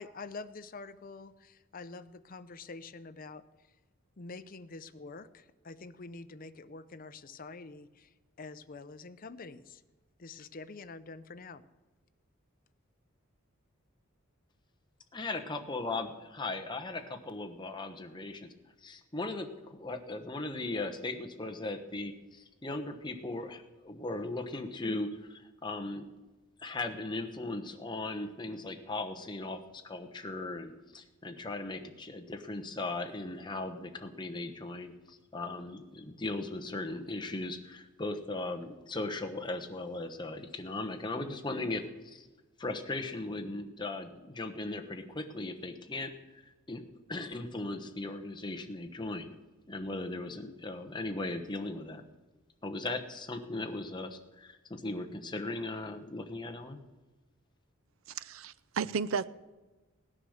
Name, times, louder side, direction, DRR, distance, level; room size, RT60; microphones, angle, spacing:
voice 1, 0.0-3.4 4.2-9.8 10.2-11.6, left 3 dB, 40° left, 11 dB, 0.6 m, -46 dB
voice 2, 15.1-18.5 18.8-26.1 26.6-42.3 42.6-46.1 46.7-49.3 49.7-52.0 52.6-56.8, left 2 dB, 20° left, 5 dB, 1.0 m, -38 dB
voice 3, 58.1-59.3, right 6 dB, 70° right, 17 dB, 0.5 m, -33 dB
17.0 x 9.9 x 6.4 m, 1.2 s
head